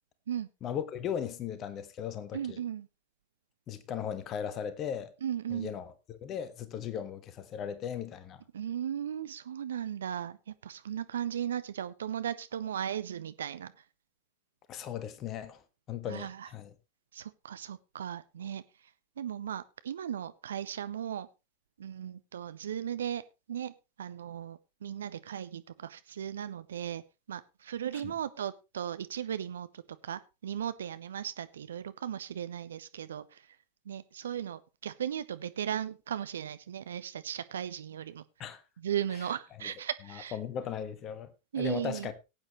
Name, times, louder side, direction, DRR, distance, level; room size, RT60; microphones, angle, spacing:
voice 1, 0.6-2.6 3.7-5.1 5.5-8.4 14.7-15.6 15.9-16.7 38.4-38.6 39.6-39.7 40.1-41.3 41.6-42.1, left 8 dB, 30° left, 1.3 m, -37 dB
voice 2, 2.3-2.9 5.2-5.7 8.5-10.4 10.6-13.7 16.1-16.5 17.1-18.6 19.2-21.3 21.8-23.2 23.5-23.7 24.0-27.0 27.3-33.5 33.9-38.2 38.8-40.4 41.5-42.1, right 9 dB, 65° right, 0.6 m, -36 dB
18.0 x 8.9 x 3.1 m
figure-of-eight pair, 90°, 0 cm